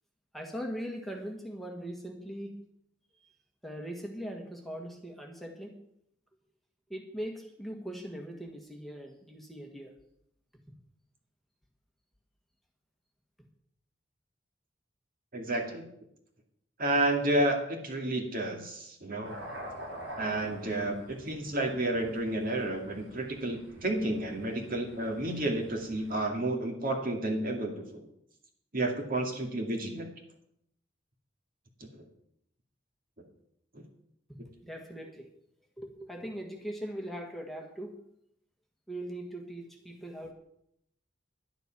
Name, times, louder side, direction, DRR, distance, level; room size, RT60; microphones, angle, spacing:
voice 1, 0.3-2.6 3.6-5.8 6.9-9.9 10.7-10.8 34.3-35.3 35.8-37.9 38.9-40.3, equal, ahead, 1 dB, 1.5 m, -40 dB
voice 2, 15.3-15.8 16.8-19.3 20.2-28.0 28.7-30.1 33.7-33.8, right 1 dB, 50° right, 2 dB, 2.5 m, -31 dB
sound 1, 19.2-26.1, equal, 90° right, 6.0 m, -46 dB
11.0 x 10.5 x 6.0 m, 0.73 s
head